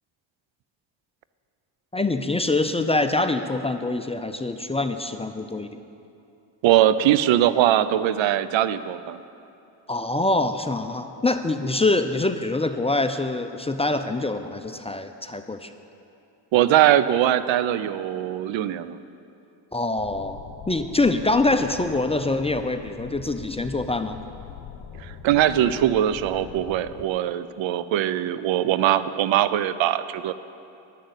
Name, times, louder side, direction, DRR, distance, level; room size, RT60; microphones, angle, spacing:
voice 1, 1.9-5.8 9.9-15.7 19.7-20.4 20.7-24.2, left 2 dB, 15° left, 8 dB, 0.4 m, -24 dB
voice 2, 6.6-9.2 16.5-19.0 25.0-30.3, right 12 dB, 75° right, 14 dB, 0.6 m, -21 dB
sound 1, 20.0-27.1, left 8 dB, 80° left, 0.8 m, -42 dB
11.0 x 6.5 x 8.1 m, 2.7 s
cardioid pair, 80°, 46 cm